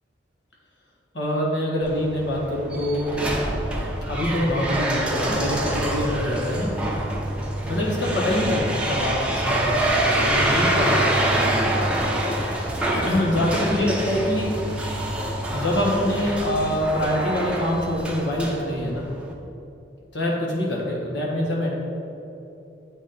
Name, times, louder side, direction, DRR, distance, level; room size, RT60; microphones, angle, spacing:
voice 1, 1.1-3.4 4.1-6.9 7.6-12.5 12.9-14.6 15.5-19.1 20.1-21.7, left 1 dB, 70° left, -3 dB, 1.5 m, -25 dB
sound 1, 1.8-19.3, right 1 dB, 5° right, 0.7 m, -26 dB
8.3 x 4.2 x 4.1 m, 2.9 s
head